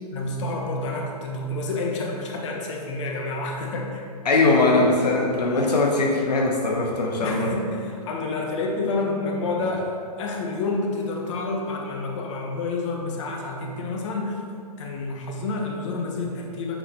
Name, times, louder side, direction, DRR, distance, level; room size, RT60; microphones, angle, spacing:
voice 1, 0.1-4.0 7.2-14.4 14.8-16.8, left 3 dB, 45° left, 0 dB, 1.4 m, -29 dB
voice 2, 4.2-7.5, left 2 dB, 80° left, 0 dB, 1.1 m, -21 dB
8.9 x 4.9 x 4.5 m, 2.3 s
hypercardioid pair, 140°, 21 cm